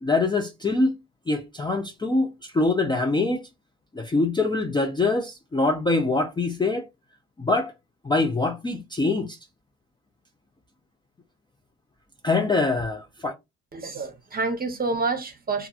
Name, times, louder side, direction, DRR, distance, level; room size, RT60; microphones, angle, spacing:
voice 1, 0.0-0.9 1.3-3.4 3.9-6.9 7.4-7.7 8.0-9.4 12.2-13.3, left 3 dB, 15° left, 0.4 m, -24 dB
voice 2, 13.7-15.7, right 3 dB, 30° right, 0.8 m, -28 dB
2.8 x 2.4 x 2.4 m
cardioid pair, 90°, 30 cm